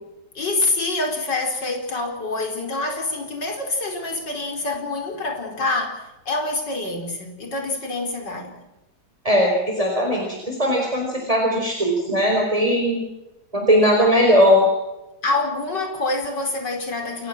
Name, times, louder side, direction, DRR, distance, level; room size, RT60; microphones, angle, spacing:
voice 1, 0.4-8.6 15.2-17.3, left 2 dB, 75° left, 3 dB, 5.2 m, -26 dB
voice 2, 9.2-13.0 13.5-14.7, equal, 20° right, 1 dB, 4.5 m, -19 dB
29.0 x 15.5 x 7.5 m, 0.98 s
omnidirectional pair, 1.9 m